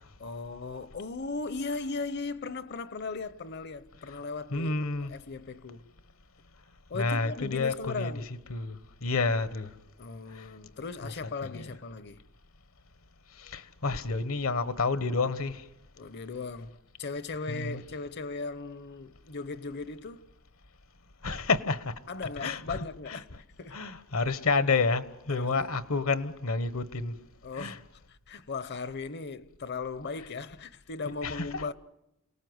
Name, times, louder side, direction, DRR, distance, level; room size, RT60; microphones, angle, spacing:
voice 1, 0.2-4.8 5.1-5.9 6.9-8.3 10.0-12.2 16.0-20.2 22.1-23.3 23.6-23.8 25.3-25.8 27.4-31.7, left 4 dB, 50° left, 0.8 m, -38 dB
voice 2, 4.5-5.1 6.9-8.1 8.5-9.7 10.3-10.4 11.4-11.7 13.4-15.6 17.5-17.8 21.2-22.0 22.4-23.2 23.7-27.1 27.5-27.8 31.2-31.6, left 4 dB, 70° left, 1.2 m, -29 dB
28.5 x 19.0 x 7.9 m
head